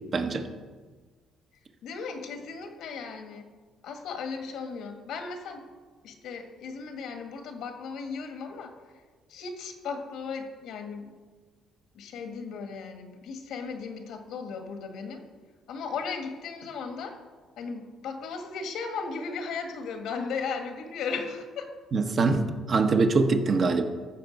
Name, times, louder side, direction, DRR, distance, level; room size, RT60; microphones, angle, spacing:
voice 1, 0.1-0.5 21.9-23.8, right 3 dB, 40° right, 6 dB, 1.1 m, -23 dB
voice 2, 1.8-3.5 3.8-5.6 6.0-8.7 9.3-11.1 11.9-15.2 15.7-17.2 17.6-21.7, left 5 dB, 75° left, 5 dB, 1.8 m, -36 dB
14.5 x 6.9 x 5.3 m, 1.4 s
cardioid pair, 130°, 0 cm